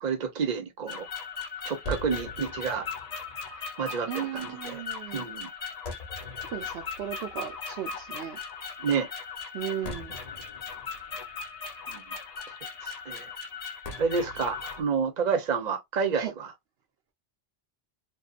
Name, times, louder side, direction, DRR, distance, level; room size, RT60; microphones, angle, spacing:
voice 1, 0.0-1.1 1.6-2.9 3.5-4.8 5.1-5.5 8.8-9.1 11.9-12.1 12.8-13.3 14.0-16.5, right 6 dB, 50° right, 0.8 m, -30 dB
sound 1, 0.9-14.8, left 4 dB, 45° left, 0.7 m, -38 dB
voice 2, 4.1-5.3 6.5-8.4 9.5-10.2 16.2-16.3, right 10 dB, 80° right, 0.8 m, -36 dB
2.7 x 2.1 x 2.4 m
omnidirectional pair, 1.0 m